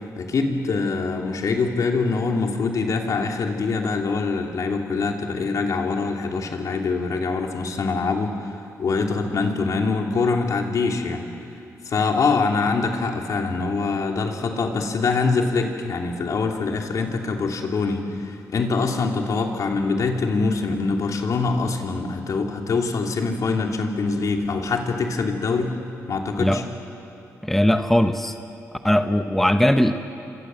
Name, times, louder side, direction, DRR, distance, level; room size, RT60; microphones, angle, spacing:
voice 1, 0.2-8.5 8.8-11.2 11.8-25.8 26.1-26.6, left 4 dB, 65° left, 2 dB, 3.1 m, -24 dB
voice 2, 27.4-28.3 28.8-29.9, left 1 dB, 5° left, 8 dB, 1.0 m, -19 dB
28.0 x 26.0 x 7.7 m, 2.7 s
cardioid pair, 90°, 6 cm